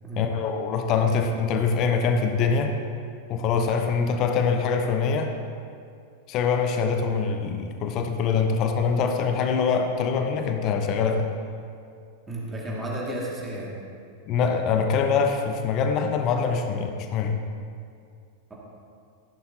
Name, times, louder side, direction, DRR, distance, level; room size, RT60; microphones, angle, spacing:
voice 1, 0.2-2.7 3.3-5.3 6.3-11.3 14.3-17.4, left 5 dB, 35° left, 5 dB, 0.9 m, -24 dB
voice 2, 12.3-13.7, right 1 dB, 15° right, -5 dB, 2.2 m, -32 dB
15.0 x 11.0 x 2.9 m, 2.3 s
figure-of-eight pair, 90°, 0 cm